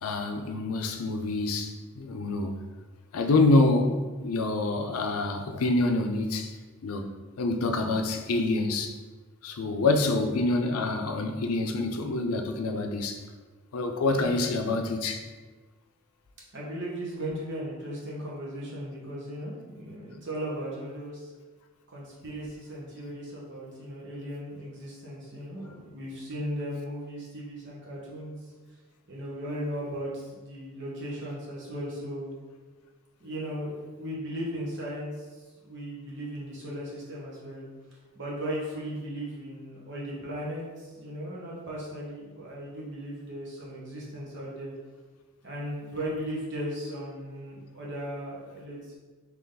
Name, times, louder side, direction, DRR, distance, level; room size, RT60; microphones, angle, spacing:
voice 1, 0.0-2.5 3.1-6.5 6.8-7.1 7.4-8.9 9.4-13.2 13.7-15.2, left 2 dB, 80° left, 0.5 m, -26 dB
voice 2, 14.1-14.5 16.5-21.3 21.9-28.4 29.1-32.3 33.2-35.3 35.6-37.6 38.1-44.7 45.4-49.0, equal, 55° right, 1.2 m, -37 dB
3.5 x 3.0 x 3.9 m
head